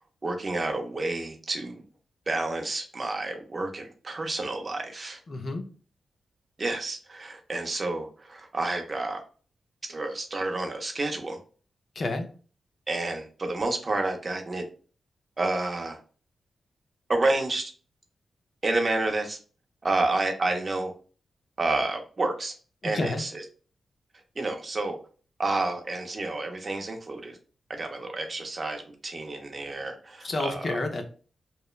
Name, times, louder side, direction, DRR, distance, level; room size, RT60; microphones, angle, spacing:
voice 1, 0.2-1.8 2.3-5.2 6.6-9.2 9.9-11.4 12.9-14.6 15.4-16.0 17.1-17.7 18.6-19.4 19.8-20.9 21.6-22.5 22.8-23.4 24.4-25.0 25.4-27.4 27.7-30.8, right 2 dB, 35° right, 4 dB, 0.5 m, -29 dB
voice 2, 5.3-5.6 12.0-12.3 22.9-23.2 30.2-31.0, left 2 dB, 45° left, 5 dB, 0.4 m, -29 dB
2.9 x 2.1 x 2.3 m, 0.39 s
wide cardioid pair, 115°, 0 cm